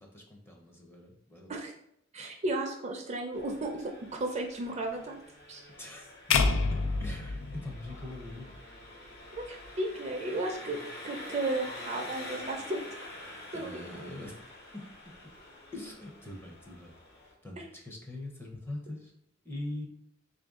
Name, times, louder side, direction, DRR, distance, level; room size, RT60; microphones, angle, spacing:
voice 1, 0.0-1.6 5.8-6.1 6.5-8.6 13.5-14.5 14.7-15.3 15.7-19.1 19.4-19.9, left 1 dB, 10° left, 1 dB, 0.6 m, -43 dB
voice 2, 2.1-5.2 5.5-5.6 9.5-10.8 11.0-12.8 13.5-13.9 17.6-17.7, right 2 dB, 35° right, 2 dB, 0.5 m, -34 dB
Engine, 3.3-17.3, left 1 dB, 55° left, 1.1 m, -47 dB
sound 1, 6.3-8.6, left 4 dB, 90° left, 0.4 m, -28 dB
3.4 x 2.5 x 3.6 m, 0.75 s
head